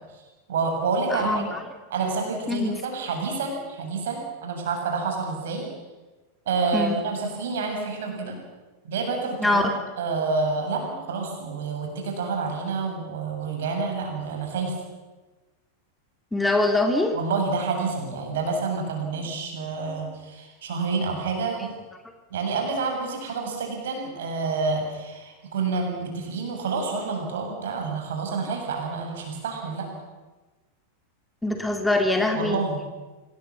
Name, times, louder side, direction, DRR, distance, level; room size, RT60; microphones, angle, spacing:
voice 1, 0.5-1.4 1.9-5.7 6.5-8.3 8.8-9.6 10.0-14.8 17.1-21.7 22.3-29.9 32.4-32.8, right 4 dB, 60° right, 2 dB, 7.3 m, -28 dB
voice 2, 1.1-1.6 2.5-2.8 6.7-7.0 9.4-9.7 16.3-17.1 31.4-32.6, left 2 dB, 5° left, 4 dB, 2.6 m, -23 dB
26.5 x 19.0 x 7.4 m, 1.2 s
figure-of-eight pair, 90°, 0 cm